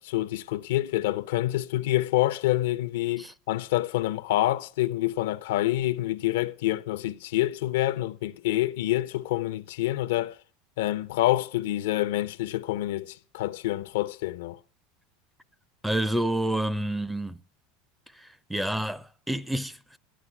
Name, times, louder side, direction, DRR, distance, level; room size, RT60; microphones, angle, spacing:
voice 1, 0.0-10.4 10.8-14.6, left 15 dB, 80° left, 0.7 m, -27 dB
voice 2, 15.8-17.4 18.2-20.0, right 1 dB, 5° right, 0.6 m, -29 dB
12.5 x 11.0 x 6.0 m
supercardioid pair, 115°, 0 cm